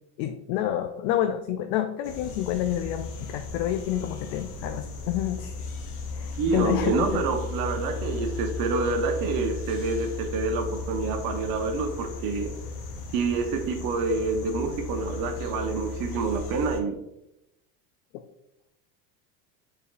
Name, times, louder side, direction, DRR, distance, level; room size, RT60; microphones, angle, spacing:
voice 1, 0.2-5.7 6.1-7.2 18.1-18.2, left 11 dB, 65° left, 7 dB, 0.5 m, -29 dB
sound 1, 2.0-16.8, left 4 dB, 90° left, 0.8 m, -36 dB
voice 2, 6.4-12.5 13.1-17.0, right 4 dB, 55° right, 5 dB, 0.8 m, -27 dB
4.3 x 3.5 x 2.4 m, 0.87 s
supercardioid pair, 110°, 44 cm